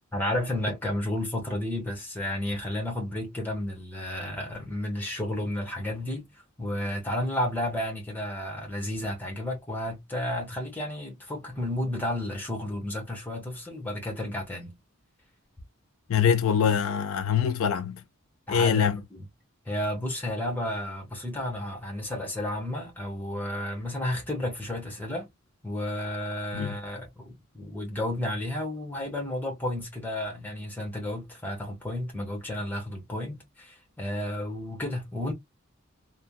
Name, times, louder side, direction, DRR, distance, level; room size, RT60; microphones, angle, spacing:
voice 1, 0.1-6.3 6.6-14.8 18.5-19.3 19.7-25.3 25.6-35.3, left 1 dB, 10° left, 1.0 m, -32 dB
voice 2, 16.1-18.0 18.5-19.0 26.5-26.7, left 7 dB, 70° left, 0.4 m, -24 dB
3.4 x 2.1 x 2.3 m
head